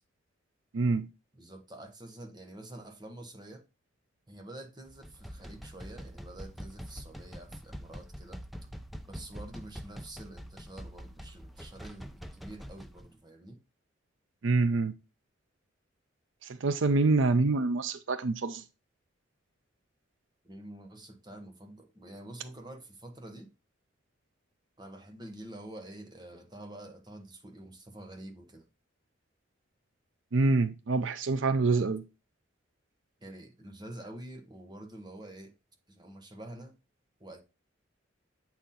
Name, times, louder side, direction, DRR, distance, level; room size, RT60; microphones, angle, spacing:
voice 1, 0.7-1.1 14.4-14.9 16.4-18.6 30.3-32.0, right 3 dB, 75° right, 0.5 m, -26 dB
voice 2, 1.3-3.6 4.3-8.4 9.0-13.6 20.4-23.5 24.8-28.7 33.2-35.5 35.9-36.7 37.2-37.4, right 1 dB, 20° right, 1.2 m, -47 dB
sound 1, 4.9-13.1, equal, ahead, 0.5 m, -45 dB
8.0 x 4.3 x 3.7 m
head